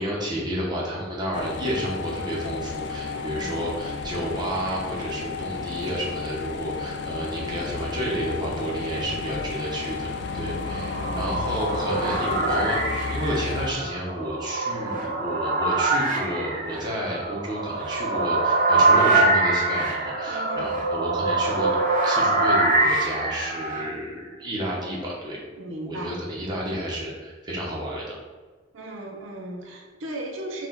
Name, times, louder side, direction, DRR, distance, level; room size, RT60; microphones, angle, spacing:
voice 1, 0.0-21.7 22.0-25.4 25.9-28.1, equal, 20° right, -5 dB, 0.9 m, -31 dB
sound 1, 1.3-13.7, left 4 dB, 60° left, 0.4 m, -32 dB
voice 2, 3.1-3.6 6.7-7.0 10.6-11.6 20.3-20.8 25.6-26.2 28.7-30.7, right 1 dB, 85° right, 0 dB, 0.7 m, -37 dB
sound 2, 10.4-23.9, right 2 dB, 45° right, 0.6 m, -24 dB
4.6 x 2.4 x 3.9 m, 1.4 s
head